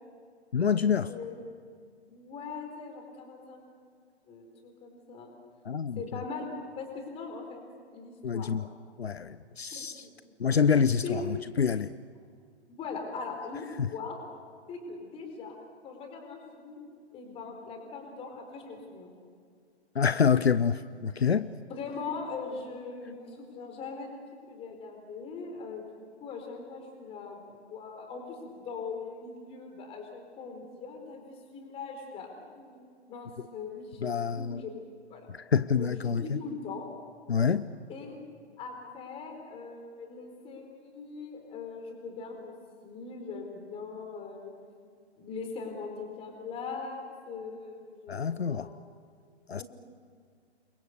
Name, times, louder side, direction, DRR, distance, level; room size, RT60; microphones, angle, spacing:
voice 1, 0.5-1.1 5.6-6.2 8.2-8.7 9.0-10.1 10.4-11.9 13.8-13.9 19.9-21.5 34.0-34.6 35.3-36.4 37.3-37.7 48.1-48.7 49.5-49.6, left 6 dB, 65° left, 15 dB, 0.8 m, -27 dB
voice 2, 1.1-1.4 2.1-3.7 4.3-5.3 6.0-6.5 6.8-7.6 7.9-8.5 9.7-10.1 11.0-11.2 12.7-14.2 14.7-15.6 15.8-16.8 17.1-19.1 21.7-27.4 27.7-34.7 35.1-35.3 35.7-36.9 37.9-38.2 38.6-42.5 42.8-44.5 45.2-48.8 49.6-49.7, left 4 dB, 15° left, 4 dB, 4.3 m, -41 dB
29.0 x 23.5 x 6.7 m, 2.2 s
figure-of-eight pair, 125°, 33 cm